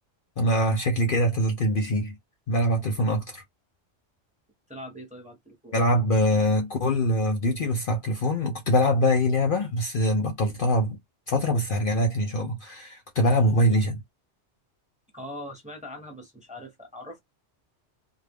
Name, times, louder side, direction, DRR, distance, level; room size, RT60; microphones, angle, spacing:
voice 1, 0.4-2.1 2.5-3.4 5.7-11.0 11.3-14.0, equal, 55° left, 0.8 m, -23 dB
voice 2, 4.7-5.7 15.1-17.2, left 1 dB, 5° right, 0.8 m, -41 dB
2.4 x 2.1 x 3.4 m
omnidirectional pair, 1.2 m